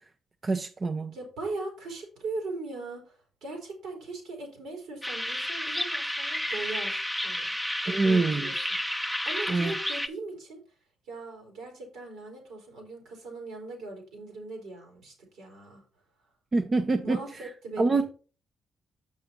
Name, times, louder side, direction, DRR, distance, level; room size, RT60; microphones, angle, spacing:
voice 1, 0.4-1.1 7.9-8.5 9.5-9.7 16.5-17.2 17.8-18.0, right 3 dB, 40° right, 0.8 m, -25 dB
voice 2, 1.1-7.5 7.8-8.5 8.8-10.6 11.1-15.8 17.0-18.0, right 3 dB, 80° right, 3.8 m, -39 dB
sound 1, 5.0-10.1, equal, ahead, 0.9 m, -31 dB
6.9 x 6.3 x 4.3 m
supercardioid pair, 55°, 0 cm